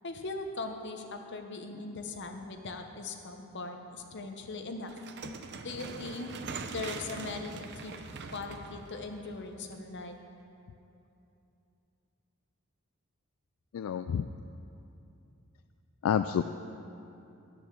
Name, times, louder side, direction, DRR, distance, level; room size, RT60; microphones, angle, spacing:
voice 1, 0.0-4.9 5.6-6.3 6.6-8.0 8.3-10.2, left 3 dB, 55° left, 4 dB, 0.9 m, -40 dB
sound 1, 4.9-10.0, right 4 dB, 50° right, 0.6 m, -43 dB
voice 2, 13.7-14.3 16.0-16.4, left 8 dB, 70° left, 9 dB, 0.3 m, -28 dB
10.5 x 7.0 x 7.5 m, 2.8 s
head